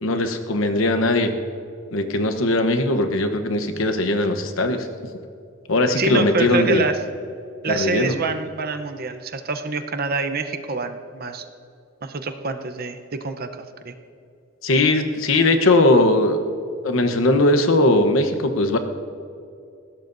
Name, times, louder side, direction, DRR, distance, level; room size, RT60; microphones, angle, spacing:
voice 1, 0.0-1.3 1.9-4.9 5.7-6.8 7.7-8.1 14.6-16.4 16.8-18.8, left 2 dB, 85° left, 7 dB, 1.0 m, -19 dB
voice 2, 6.0-7.0 7.6-11.5 12.0-13.9, right 4 dB, 50° right, 8 dB, 0.8 m, -26 dB
20.0 x 16.5 x 2.7 m, 2.5 s
head